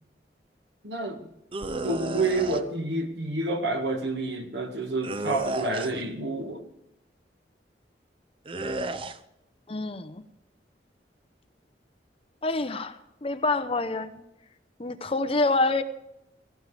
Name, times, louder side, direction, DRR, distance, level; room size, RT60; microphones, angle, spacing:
voice 1, 0.8-1.3 1.8-6.7, right 2 dB, 80° right, 1.9 m, -29 dB
sound 1, 1.5-2.6 5.0-6.1 8.5-9.2, right 2 dB, 30° right, 0.6 m, -32 dB
voice 2, 9.7-10.2 12.4-14.2 14.8-15.8, left 2 dB, 35° left, 0.8 m, -27 dB
17.0 x 16.5 x 3.4 m
head